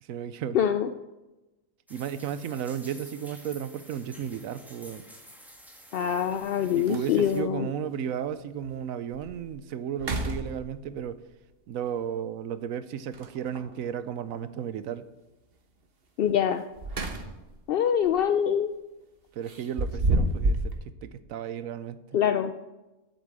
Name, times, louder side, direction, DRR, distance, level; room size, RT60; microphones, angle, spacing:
voice 1, 0.0-0.6 1.9-5.0 6.7-11.2 11.7-15.1 19.3-22.0, right 9 dB, 85° right, 1.1 m, -34 dB
voice 2, 0.5-0.9 5.9-7.7 16.2-16.6 17.7-18.7 22.1-22.5, left 8 dB, 65° left, 0.6 m, -24 dB
sound 1, 1.9-7.4, equal, ahead, 1.5 m, -51 dB
sound 2, 4.1-4.3 6.0-6.1 6.5-6.6 6.9-7.4 8.0-8.1 8.6-8.7 9.1-9.5 9.9-11.0 13.1-13.8 16.5-17.6 17.9-18.2 19.5-20.8, right 1 dB, 45° right, 1.2 m, -30 dB
8.2 x 7.3 x 7.8 m
omnidirectional pair, 1.4 m